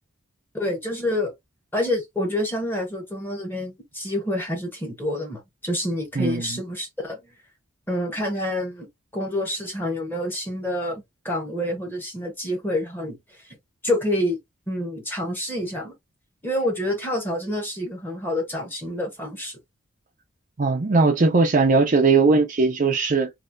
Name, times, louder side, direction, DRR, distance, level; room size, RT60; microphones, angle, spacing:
voice 1, 0.5-1.3 1.7-7.2 7.9-8.9 9.1-13.2 13.8-14.4 14.7-15.9 16.4-19.6, left 1 dB, 10° left, 1.2 m, -27 dB
voice 2, 6.2-6.6 20.6-23.3, right 4 dB, 40° right, 0.5 m, -19 dB
3.2 x 2.7 x 2.6 m
head